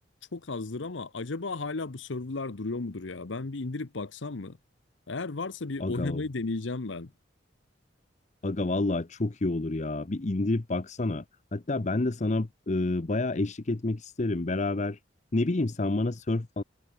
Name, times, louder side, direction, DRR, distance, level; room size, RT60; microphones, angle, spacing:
voice 1, 0.3-4.6 5.1-7.1, left 3 dB, 80° left, 1.0 m, -34 dB
voice 2, 5.8-6.2 8.4-11.2 11.5-15.0 15.3-16.6, left 2 dB, 40° left, 0.8 m, -29 dB
head